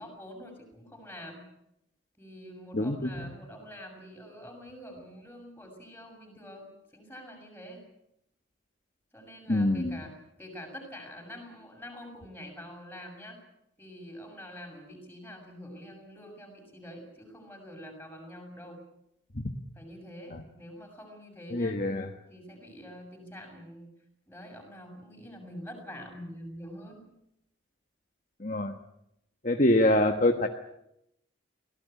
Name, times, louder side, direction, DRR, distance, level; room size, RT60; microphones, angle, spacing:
voice 1, 0.0-1.4 2.2-7.8 9.1-10.1 10.4-13.4 13.8-18.8 19.7-21.7 22.3-23.9 24.3-27.1, equal, 10° left, 2 dB, 6.9 m, -46 dB
voice 2, 2.7-3.3 9.5-10.0 19.3-19.5 20.3-20.4 21.5-22.1 28.4-28.8 29.4-30.5, left 1 dB, 40° left, 4 dB, 1.4 m, -25 dB
24.5 x 18.0 x 8.3 m, 0.80 s
head